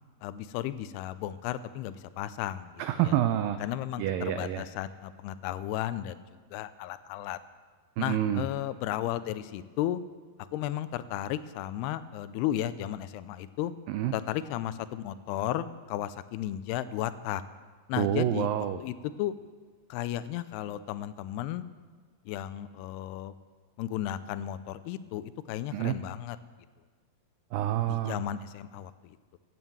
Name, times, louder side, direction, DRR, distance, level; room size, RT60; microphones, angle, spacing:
voice 1, 0.2-2.7 3.1-3.2 3.6-6.2 6.5-7.4 8.0-10.0 10.5-13.7 14.1-17.4 17.9-18.5 18.8-19.3 19.9-21.7 22.3-23.3 23.8-26.4 27.9-29.4, left 12 dB, 85° left, 14 dB, 2.6 m, -34 dB
voice 2, 2.8-3.6 4.0-4.6 8.0-8.5 13.9-14.1 18.0-18.8 25.7-26.0 27.5-28.2, right 11 dB, 85° right, 10 dB, 2.0 m, -28 dB
14.5 x 9.2 x 7.8 m, 1.5 s
omnidirectional pair, 4.6 m